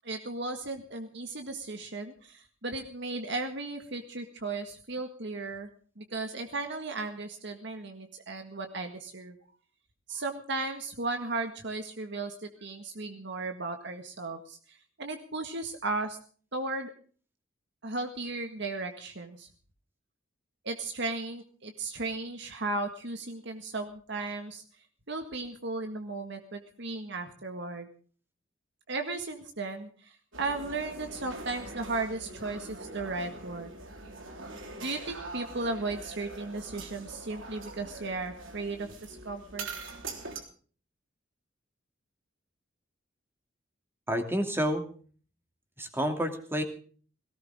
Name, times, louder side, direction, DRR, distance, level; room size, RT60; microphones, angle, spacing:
voice 1, 0.0-5.7 6.0-9.4 10.1-16.2 16.5-16.9 17.8-19.5 20.6-24.6 25.1-27.9 28.9-33.8 34.8-39.7, right 3 dB, 65° right, 5 dB, 1.8 m, -35 dB
sound 1, 30.3-40.4, right 3 dB, 85° right, 3.6 m, -43 dB
voice 2, 44.1-44.9 45.8-46.6, equal, 10° right, 5 dB, 2.7 m, -29 dB
18.5 x 17.5 x 3.7 m, 0.43 s
head